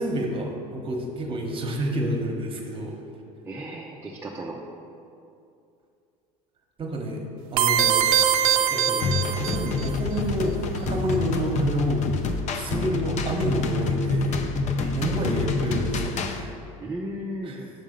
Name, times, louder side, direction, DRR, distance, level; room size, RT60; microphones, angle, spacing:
voice 1, 0.0-3.0 6.8-7.2 7.5-8.1 8.7-12.1 12.5-14.4 14.9-16.5 17.4-17.7, right 1 dB, 30° right, 1 dB, 1.1 m, -29 dB
voice 2, 3.5-4.6 14.8-15.0 16.8-17.7, right 1 dB, 15° right, -3 dB, 0.6 m, -35 dB
sound 1, 7.6-9.9, right 9 dB, 85° right, 0.5 m, -22 dB
sound 2, 9.0-16.4, left 4 dB, 45° left, 0.5 m, -27 dB
6.6 x 3.6 x 5.1 m, 2.5 s
hypercardioid pair, 85°, 17 cm